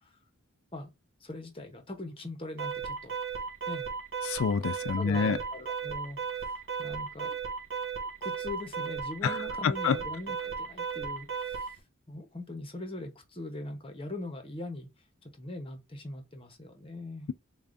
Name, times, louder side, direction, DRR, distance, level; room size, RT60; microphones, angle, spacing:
voice 1, 1.2-3.1 3.7-3.9 4.7-7.4 8.2-11.7 12.1-14.9 15.2-17.3, left 2 dB, 25° left, 0.9 m, -41 dB
Alarm, 2.6-11.8, right 6 dB, 55° right, 2.2 m, -35 dB
voice 2, 4.2-5.4 9.2-9.4 9.6-10.0, left 6 dB, 65° left, 0.3 m, -27 dB
6.7 x 2.4 x 2.5 m
head